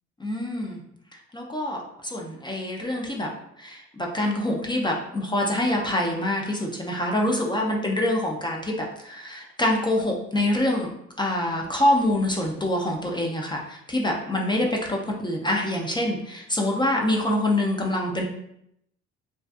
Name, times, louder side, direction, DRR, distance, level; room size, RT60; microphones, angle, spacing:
voice 1, 0.2-0.8 1.3-3.3 3.6-8.7 9.0-10.9 11.2-18.2, left 1 dB, 15° left, 0 dB, 0.4 m, -25 dB
2.5 x 2.3 x 2.3 m, 0.75 s
cardioid pair, 90°, 30 cm